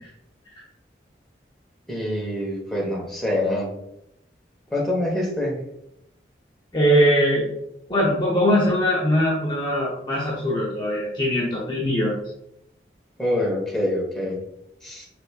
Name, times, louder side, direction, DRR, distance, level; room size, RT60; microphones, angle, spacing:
voice 1, 1.9-3.7 4.7-5.6 13.2-14.4 14.8-15.1, left 1 dB, ahead, -4 dB, 1.0 m, -25 dB
voice 2, 6.7-7.5 7.9-12.1, equal, 25° left, -5 dB, 0.6 m, -21 dB
5.1 x 3.4 x 2.3 m, 0.81 s
head